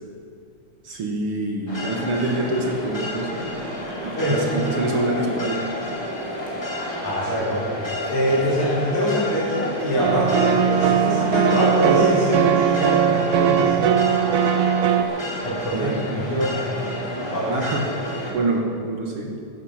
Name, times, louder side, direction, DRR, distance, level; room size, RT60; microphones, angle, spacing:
voice 1, 0.8-3.7 4.0-5.7 15.7-16.1 17.5-17.8 18.3-19.3, right 2 dB, 55° right, 1 dB, 2.0 m, -26 dB
sound 1, 1.7-18.3, left 1 dB, 10° left, 3.0 m, -31 dB
sound 2, 4.2-9.2, left 3 dB, 15° right, 4.4 m, -36 dB
voice 2, 7.0-7.6 8.1-13.8 15.4-16.6 17.2-17.6, equal, 75° left, -6 dB, 5.7 m, -24 dB
sound 3, 10.0-15.0, right 8 dB, 75° right, 1.3 m, -19 dB
15.0 x 12.0 x 5.7 m, 2.5 s
omnidirectional pair, 3.4 m